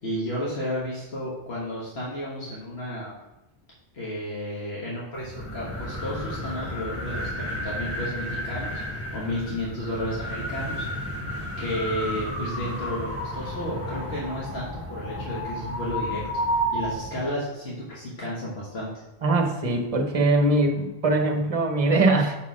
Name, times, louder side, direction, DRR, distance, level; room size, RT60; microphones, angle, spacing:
voice 1, 0.0-3.1 3.9-10.9 11.6-16.2 16.7-18.9, equal, 80° left, -6 dB, 1.5 m, -32 dB
sound 1, 5.1-17.3, equal, 15° left, 1.1 m, -32 dB
voice 2, 19.2-22.4, right 2 dB, 40° right, 3 dB, 0.8 m, -22 dB
6.4 x 4.1 x 4.8 m, 1.0 s
omnidirectional pair, 1.1 m